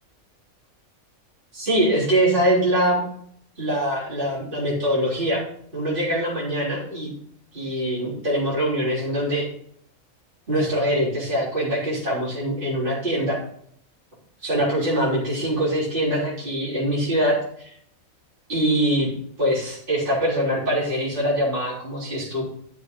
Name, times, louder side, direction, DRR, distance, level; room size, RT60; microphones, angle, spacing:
voice 1, 1.5-3.0 3.6-5.4 5.7-7.1 7.5-9.5 10.5-13.4 14.4-17.7 18.5-19.1 19.4-22.4, equal, 35° right, -8 dB, 3.9 m, -23 dB
11.0 x 7.7 x 3.8 m, 0.65 s
omnidirectional pair, 1.4 m